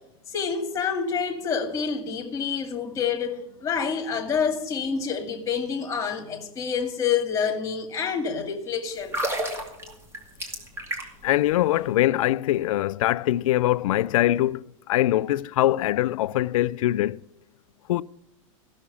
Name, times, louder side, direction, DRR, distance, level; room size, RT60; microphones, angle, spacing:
voice 1, 0.3-9.2 9.8-9.9, left 6 dB, 20° left, 2.1 m, -27 dB
sound 1, 9.0-11.3 11.6-11.8, right 1 dB, 15° right, 2.3 m, -31 dB
voice 2, 11.2-14.6 14.9-17.2 17.9-18.0, left 14 dB, 75° left, 0.4 m, -22 dB
15.0 x 6.4 x 8.5 m
supercardioid pair, 140°, 18 cm